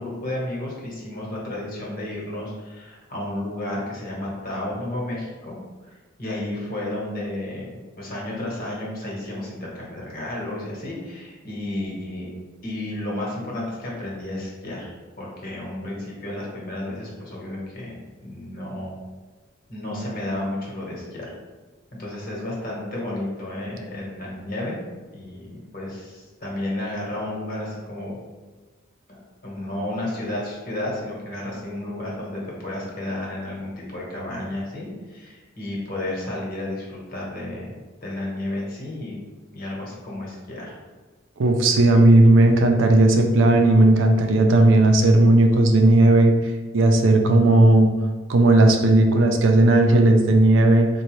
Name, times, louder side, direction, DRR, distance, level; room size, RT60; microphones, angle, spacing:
voice 1, 0.0-5.5 5.8-12.3 12.6-14.9 15.2-19.0 19.7-21.3 22.0-24.8 25.1-28.2 29.4-37.7 38.0-39.1 39.5-40.7, left 1 dB, 50° left, -4 dB, 1.1 m, -32 dB
voice 2, 41.4-46.3 46.7-47.9 48.3-50.9, right 2 dB, 75° right, 4 dB, 0.4 m, -15 dB
4.1 x 2.3 x 3.0 m, 1.3 s
head